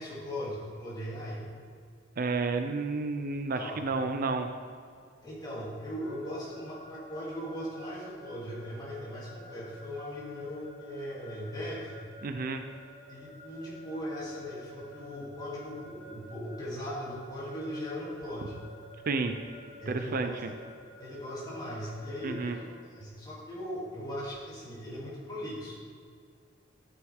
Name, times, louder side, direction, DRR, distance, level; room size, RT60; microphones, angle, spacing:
voice 1, 0.0-1.4 3.5-3.8 5.2-12.0 13.1-18.6 19.8-20.4 21.0-22.6 22.9-25.8, equal, 20° left, -6 dB, 2.9 m, -39 dB
voice 2, 2.2-4.5 12.2-12.6 19.1-19.3 19.9-20.5 22.2-22.6, right 3 dB, 45° right, 7 dB, 0.5 m, -31 dB
Keyboard (musical) / Alarm, 6.0-22.6, equal, 90° left, 2.9 m, -50 dB
12.5 x 9.2 x 3.6 m, 2.2 s
head